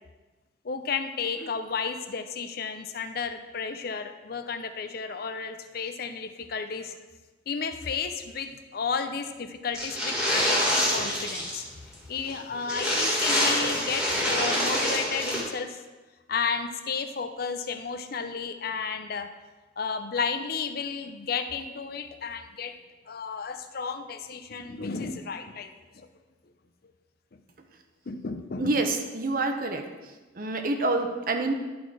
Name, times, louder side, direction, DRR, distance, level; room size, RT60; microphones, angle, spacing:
voice 1, 0.6-7.0 7.5-11.6 12.1-15.8 16.3-19.3 19.8-22.7 23.1-25.7 25.9-26.1 28.1-28.8, left 5 dB, 55° left, 9 dB, 0.5 m, -33 dB
sound 1, 9.7-11.7 11.9-12.0 12.3-12.4 12.6-15.4, equal, 5° right, 1.7 m, -26 dB
voice 2, 28.6-29.8 30.3-31.5, right 2 dB, 50° right, 5 dB, 0.8 m, -27 dB
11.0 x 4.1 x 4.7 m, 1.2 s
head